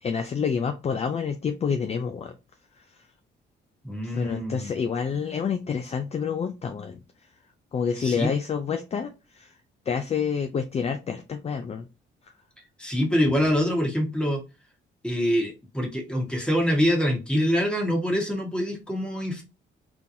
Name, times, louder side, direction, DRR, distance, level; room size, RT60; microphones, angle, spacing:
voice 1, 0.0-2.4 2.8-2.9 4.0-7.0 7.7-9.5 9.9-11.9, left 6 dB, 30° left, 7 dB, 0.4 m, -28 dB
voice 2, 3.8-4.7 8.0-8.3 12.8-14.4 15.0-19.4, equal, 5° left, 1 dB, 1.3 m, -25 dB
3.6 x 3.0 x 2.6 m, 0.28 s
cardioid pair, 90°, 20 cm